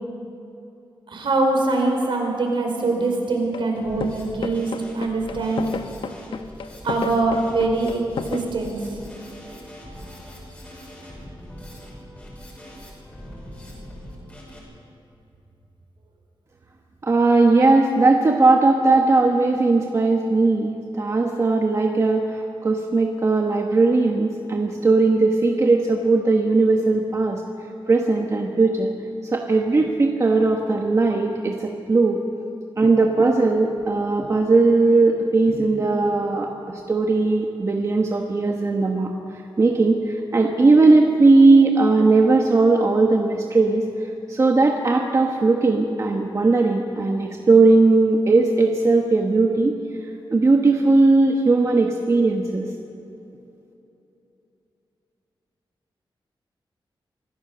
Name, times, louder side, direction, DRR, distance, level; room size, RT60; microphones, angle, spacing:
voice 1, 1.1-5.7 6.8-8.0 8.3-8.8, right 3 dB, 65° right, 1 dB, 4.5 m, -23 dB
sound 1, 3.5-3.7 4.0-8.4, left 5 dB, 70° left, 1.0 m, -31 dB
Drum kit, 3.8-14.6, equal, 15° left, 5.8 m, -41 dB
voice 2, 17.0-27.4 27.9-28.9 29.3-32.2 32.8-39.1 39.6-43.8 44.3-49.7 50.3-52.7, right 3 dB, 35° right, 2 dB, 1.3 m, -18 dB
25.0 x 16.0 x 6.9 m, 2.9 s
wide cardioid pair, 160°, 9 cm